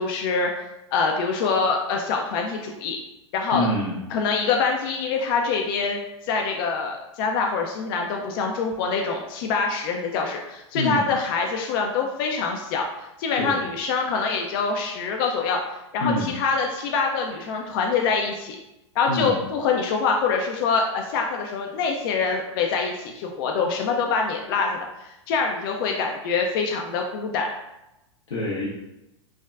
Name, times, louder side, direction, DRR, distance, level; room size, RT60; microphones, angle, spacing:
voice 1, 0.0-3.0 3.3-3.7 4.1-15.6 15.9-18.6 19.0-27.5, left 5 dB, 50° left, 1 dB, 0.4 m, -25 dB
voice 2, 3.5-4.0 10.7-11.1 13.4-13.6 16.0-16.3 19.1-19.4 28.3-28.7, left 1 dB, 80° left, -6 dB, 0.7 m, -26 dB
3.3 x 2.1 x 2.3 m, 0.92 s
hypercardioid pair, 105°, 15 cm